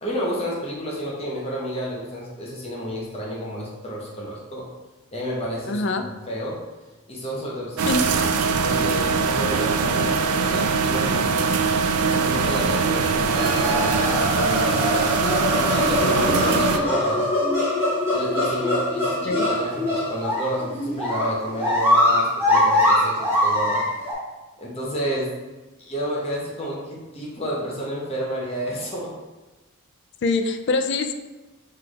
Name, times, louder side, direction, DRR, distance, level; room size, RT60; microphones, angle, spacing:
voice 1, 0.0-4.7 5.1-6.6 7.1-8.2 8.5-11.5 12.1-15.1 15.5-17.3 18.1-23.8 24.6-25.4 25.8-29.2, equal, 25° left, -4 dB, 0.8 m, -30 dB
voice 2, 5.7-6.0 7.9-8.0 16.2-16.6 19.2-19.4 30.2-31.1, left 3 dB, 50° left, 6 dB, 0.3 m, -24 dB
sound 1, 7.8-16.8, right 5 dB, 85° right, 0.4 m, -22 dB
sound 2, 13.3-24.1, left 1 dB, 10° right, 1.3 m, -22 dB
5.8 x 3.3 x 2.4 m, 1.1 s
head